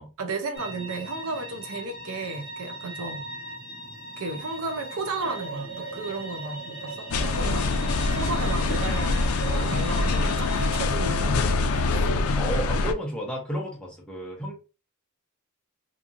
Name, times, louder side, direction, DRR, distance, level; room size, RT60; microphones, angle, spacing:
voice 1, 0.2-3.2 4.2-12.1, right 3 dB, 75° right, 0.6 m, -34 dB
sound 1, 0.5-10.8, equal, 50° left, 1.0 m, -40 dB
sound 2, 5.2-11.2, right 5 dB, 55° right, 0.9 m, -42 dB
sound 3, 7.1-12.9, left 3 dB, 70° left, 0.4 m, -24 dB
voice 2, 12.3-14.5, equal, 5° left, 0.8 m, -32 dB
2.9 x 2.5 x 2.5 m
head